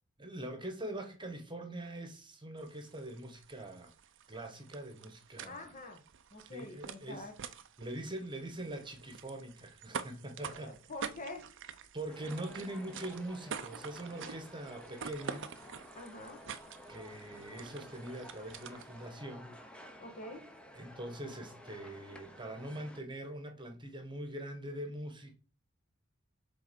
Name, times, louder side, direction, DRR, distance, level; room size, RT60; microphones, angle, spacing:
voice 1, 0.2-3.9 4.3-5.7 6.4-7.3 7.8-10.7 11.9-15.5 16.9-19.6 20.7-25.3, right 1 dB, 20° right, 1.3 m, -43 dB
sound 1, 2.6-19.1, right 6 dB, 60° right, 0.6 m, -47 dB
voice 2, 5.4-6.0 6.3-7.3 10.4-11.4 15.9-16.4 20.0-20.4, left 2 dB, 40° left, 1.5 m, -46 dB
sound 2, 12.1-23.0, left 1 dB, 5° left, 0.9 m, -53 dB
7.0 x 4.0 x 5.3 m
head